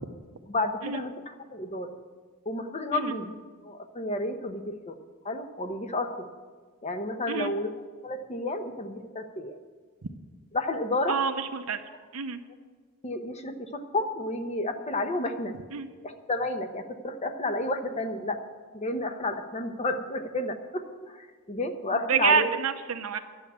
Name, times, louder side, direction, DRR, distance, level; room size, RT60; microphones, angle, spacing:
voice 1, 0.5-1.9 2.5-3.3 3.6-5.0 5.2-6.3 6.8-7.7 8.0-9.6 10.5-11.2 11.9-12.0 13.0-15.5 16.0-18.4 18.7-22.5, left 2 dB, 30° left, 7 dB, 0.9 m, -31 dB
voice 2, 11.1-11.8 12.1-12.4 15.7-15.9 22.1-23.2, right 6 dB, 80° right, 6 dB, 0.8 m, -27 dB
11.0 x 7.0 x 9.4 m, 1.5 s
head